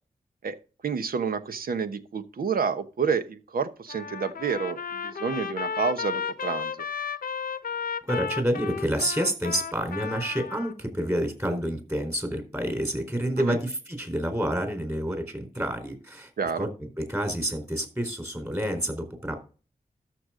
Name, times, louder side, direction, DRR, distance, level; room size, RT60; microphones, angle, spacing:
voice 1, 0.8-6.7 13.4-13.6 16.4-16.7, right 6 dB, 85° right, 10 dB, 1.0 m, -29 dB
Trumpet, 3.9-10.7, left 6 dB, 75° left, 0.7 m, -33 dB
voice 2, 8.1-16.7 17.0-19.4, equal, 20° right, 5 dB, 4.0 m, -29 dB
13.0 x 6.7 x 3.8 m, 0.36 s
wide cardioid pair, 65°, 15 cm